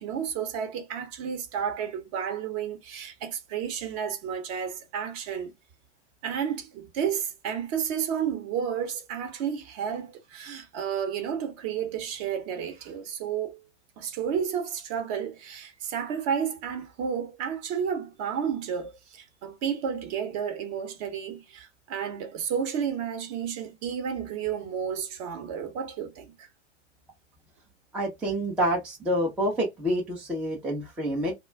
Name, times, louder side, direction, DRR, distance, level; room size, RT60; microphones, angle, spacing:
voice 1, 0.0-5.5 6.2-13.6 14.0-26.5, right 8 dB, 35° right, 0.7 m, -31 dB
voice 2, 27.9-31.3, equal, 5° right, 0.4 m, -27 dB
2.3 x 2.1 x 3.2 m
hypercardioid pair, 110°, 37 cm